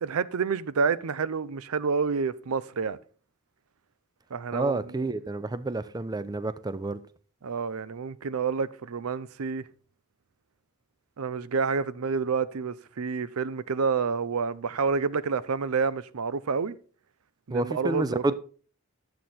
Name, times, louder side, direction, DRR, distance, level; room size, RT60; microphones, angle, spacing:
voice 1, 0.0-3.0 4.3-4.8 7.4-9.6 11.2-16.8 17.5-18.2, right 5 dB, 80° right, 0.5 m, -28 dB
voice 2, 4.5-7.0 17.5-18.3, right 2 dB, 20° right, 0.4 m, -29 dB
10.5 x 7.8 x 4.2 m
head